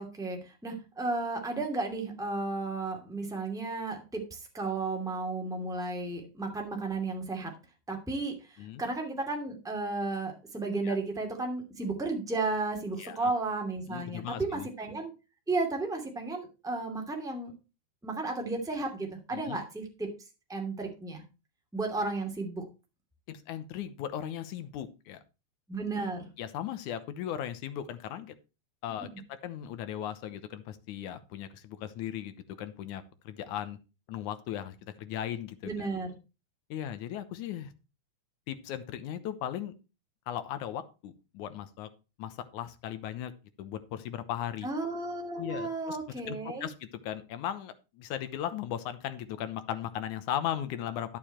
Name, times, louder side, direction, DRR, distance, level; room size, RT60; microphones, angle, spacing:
voice 1, 0.0-7.5 7.9-15.1 15.5-17.5 18.0-20.1 20.5-21.2 21.7-22.7 25.7-26.3 35.6-36.1 44.6-46.7, right 3 dB, ahead, 2 dB, 2.1 m, -33 dB
voice 2, 13.0-13.3 13.9-14.7 19.3-19.6 23.3-25.2 26.4-28.3 28.8-29.1 29.4-33.8 34.1-35.9 36.7-37.7 38.5-39.7 40.3-41.9 42.2-43.3 43.6-44.7 45.4-46.0 46.3-46.7 47.0-51.2, left 10 dB, 80° left, 11 dB, 2.5 m, -37 dB
11.0 x 6.9 x 4.4 m, 0.30 s
omnidirectional pair, 3.5 m